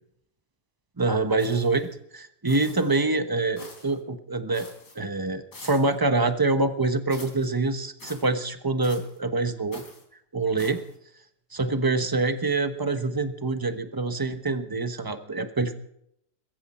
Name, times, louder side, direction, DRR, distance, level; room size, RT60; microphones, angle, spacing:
voice 1, 1.0-4.7 4.9-9.8 10.3-10.8 11.5-15.7, right 3 dB, 15° right, 8 dB, 0.9 m, -25 dB
sound 1, 1.4-1.9 2.5-3.0 3.6-4.0 4.5-5.0 5.5-6.0 7.1-7.5 8.0-8.3 8.8-9.2 9.7-10.0 10.6-10.9, left 3 dB, 75° left, 4.2 m, -46 dB
22.0 x 14.5 x 4.4 m, 0.72 s
omnidirectional pair, 1.9 m